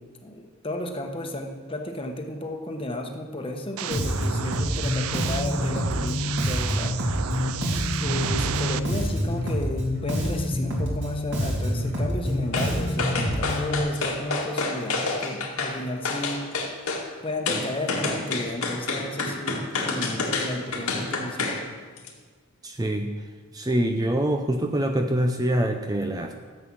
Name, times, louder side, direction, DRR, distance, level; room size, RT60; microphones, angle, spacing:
voice 1, 0.2-7.0 8.0-16.4 17.2-21.6, left 1 dB, 25° left, 3 dB, 1.1 m, -33 dB
sound 1, 3.8-8.8, right 9 dB, 80° right, 0.5 m, -32 dB
Bass guitar, 3.9-13.8, left 1 dB, 55° right, 2.6 m, -27 dB
sound 2, 12.5-12.7 13.0-15.7 16.0-17.0 17.5-21.6 22.0-22.1, left 3 dB, 80° left, 2.1 m, -28 dB
voice 2, 22.6-23.1 23.5-26.3, right 1 dB, 15° right, 5 dB, 0.5 m, -25 dB
13.0 x 8.0 x 6.1 m, 1.5 s
head